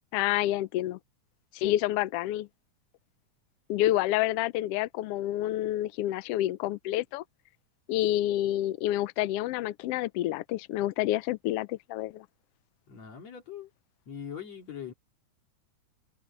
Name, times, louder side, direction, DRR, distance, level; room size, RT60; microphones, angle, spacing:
voice 1, 0.1-1.0 1.5-2.5 3.7-7.2 7.9-12.2, left 14 dB, 90° left, 1.3 m, -28 dB
voice 2, 12.9-13.7 14.1-14.9, left 8 dB, 60° left, 4.2 m, -41 dB
omnidirectional pair, 3.5 m